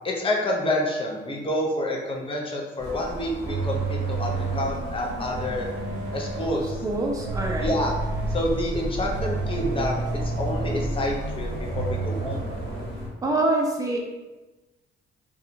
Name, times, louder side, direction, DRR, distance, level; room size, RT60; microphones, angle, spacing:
voice 1, 0.0-5.7 6.1-6.8 7.6-7.9 8.3-12.4, left 1 dB, 25° left, -1 dB, 0.6 m, -28 dB
sound 1, 2.8-13.1, equal, 50° left, 1.2 m, -36 dB
sound 2, 3.5-4.8 5.3-6.7 7.2-8.6 9.1-11.0 11.5-12.9, right 4 dB, 75° right, 0.5 m, -31 dB
voice 2, 6.6-7.8 13.2-14.0, right 2 dB, 15° right, 0 dB, 0.5 m, -25 dB
sound 3, 7.3-12.1, equal, 45° right, 0.9 m, -34 dB
2.7 x 2.3 x 2.5 m, 1.1 s
cardioid pair, 90°, 20 cm